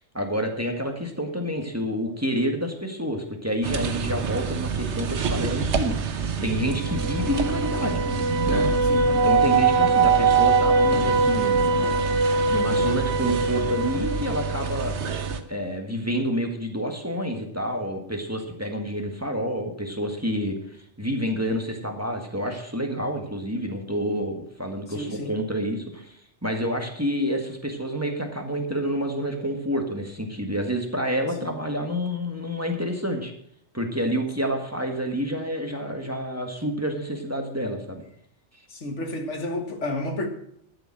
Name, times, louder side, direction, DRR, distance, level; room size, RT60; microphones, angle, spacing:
voice 1, 0.1-8.1 8.5-8.7 9.1-12.2 12.5-15.0 15.5-20.6 21.0-33.3 33.7-38.0, equal, 15° right, 1.7 m, -28 dB
sound 1, 3.6-15.4, right 4 dB, 75° right, 1.3 m, -23 dB
voice 2, 8.8-9.2 24.9-25.4 31.4-31.5 38.7-40.3, left 1 dB, 90° left, 2.0 m, -31 dB
12.5 x 7.0 x 7.6 m
omnidirectional pair, 1.2 m